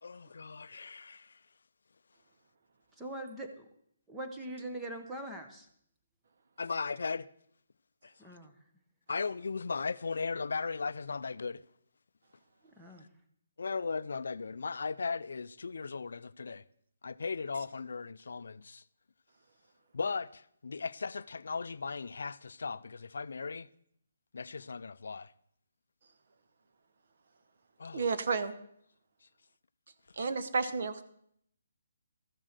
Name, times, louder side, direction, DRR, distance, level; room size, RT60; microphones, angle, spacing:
voice 1, 0.0-1.4 6.6-7.3 8.0-8.1 9.1-11.6 13.6-16.6 17.0-18.8 19.9-23.7 24.3-25.3 27.8-28.0, left 4 dB, 70° left, 0.4 m, -37 dB
voice 2, 3.0-3.7 4.1-5.7 8.2-8.5 12.8-13.1, right 1 dB, 5° right, 1.0 m, -42 dB
voice 3, 27.9-28.5 30.2-31.0, right 4 dB, 50° right, 1.0 m, -31 dB
13.5 x 7.4 x 6.6 m
hypercardioid pair, 170°, 0 cm